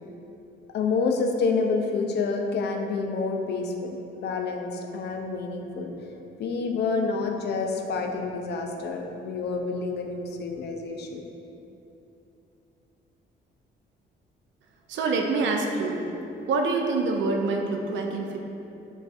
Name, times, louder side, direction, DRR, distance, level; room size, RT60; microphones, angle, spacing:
voice 1, 0.7-6.1 6.4-11.2, left 4 dB, 55° left, 3 dB, 0.4 m, -28 dB
voice 2, 14.9-16.1 16.5-18.4, right 3 dB, 70° right, 2 dB, 0.4 m, -26 dB
4.6 x 2.4 x 2.4 m, 2.9 s
cardioid pair, 90°, 20 cm